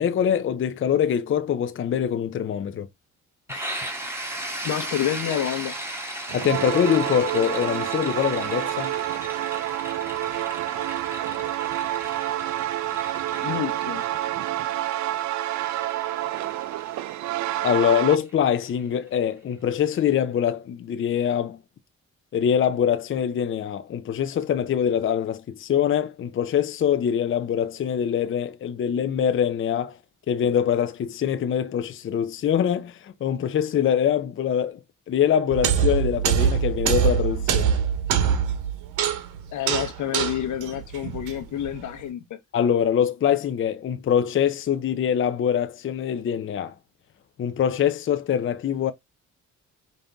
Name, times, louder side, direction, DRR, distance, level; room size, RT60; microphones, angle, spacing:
voice 1, 0.0-2.9 3.5-3.7 6.3-8.9 17.6-21.6 22.3-30.0 30.3-34.8 35.1-37.8 42.5-46.7 47.4-48.9, left 9 dB, 45° left, 0.5 m, -24 dB
sound 1, 3.5-19.1, right 1 dB, 10° right, 1.7 m, -37 dB
voice 2, 4.6-5.8 13.4-14.0 39.5-42.4, left 10 dB, 75° left, 1.0 m, -28 dB
sound 2, 6.3-18.2, right 14 dB, 70° right, 0.4 m, -28 dB
sound 3, 35.5-41.8, right 8 dB, 85° right, 1.0 m, -24 dB
5.2 x 2.7 x 3.4 m
cardioid pair, 90°, 30 cm